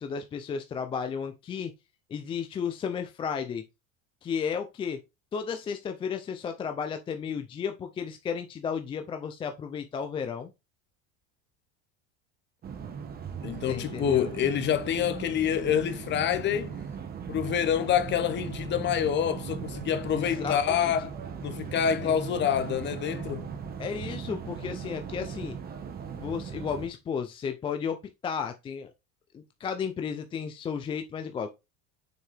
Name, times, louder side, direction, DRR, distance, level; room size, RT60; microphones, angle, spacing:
voice 1, 0.0-1.7 2.1-3.6 4.2-5.0 5.3-10.5 13.7-14.3 20.1-20.9 23.8-25.6 26.2-28.0 28.2-28.9 29.3-31.5, left 6 dB, 15° left, 0.3 m, -33 dB
sound 1, 12.6-26.9, right 7 dB, 25° right, 1.0 m, -38 dB
voice 2, 13.4-16.8 17.3-21.1 21.4-23.5, left 9 dB, 30° left, 0.9 m, -27 dB
6.5 x 4.6 x 3.3 m
cardioid pair, 150°, 35 cm